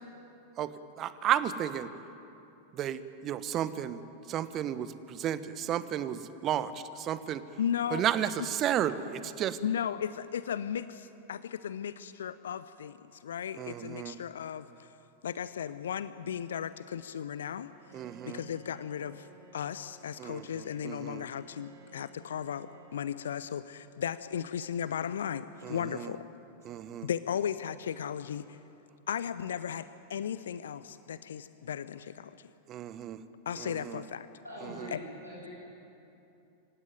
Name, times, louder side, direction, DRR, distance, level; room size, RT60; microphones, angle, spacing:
voice 1, 1.0-1.9 2.7-4.0 4.3-7.4 7.9-9.6 13.6-14.2 17.9-18.4 20.2-21.2 25.6-26.1 26.6-27.1 32.7-33.2 33.6-34.0, right 10 dB, 30° right, 13 dB, 1.2 m, -33 dB
voice 2, 7.6-8.0 9.6-14.9 15.2-17.7 18.2-19.3 19.5-26.3 27.0-28.6 29.1-32.5 33.5-34.3 34.9-35.0, left 8 dB, 65° left, 15 dB, 0.6 m, -36 dB
Bowed string instrument, 17.7-23.9, right 3 dB, 55° right, 4.2 m, -57 dB
voice 3, 34.4-35.5, equal, 90° left, -7 dB, 8.0 m, -43 dB
26.0 x 16.5 x 9.3 m, 2.8 s
figure-of-eight pair, 90°, 0 cm